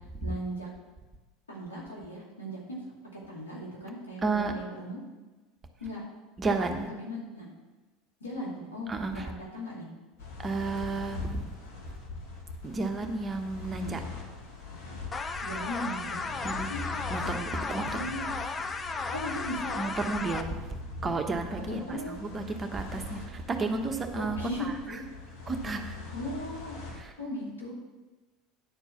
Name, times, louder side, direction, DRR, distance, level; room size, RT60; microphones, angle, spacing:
voice 1, 0.2-0.7 1.5-2.8 3.1-5.0 5.8-6.0 6.9-7.5 8.2-9.9 15.4-16.2 16.5-16.8 17.2-17.5 17.7-18.4 19.1-19.9 21.7-22.1 24.2-25.0 26.1-26.8 27.2-27.7, equal, 85° left, -4 dB, 2.7 m, -38 dB
voice 2, 4.2-4.5 6.4-6.9 8.9-9.2 10.4-11.4 12.6-14.0 16.4-16.7 17.1-18.0 19.8-20.7 21.0-24.7 25.5-26.0 27.0-27.1, right 3 dB, 25° right, 4 dB, 1.2 m, -32 dB
sound 1, 10.2-27.0, left 3 dB, 65° left, 1.8 m, -42 dB
sound 2, 15.1-20.4, left 4 dB, 25° left, 0.7 m, -35 dB
9.9 x 4.5 x 7.1 m, 1.2 s
hypercardioid pair, 75°, 0 cm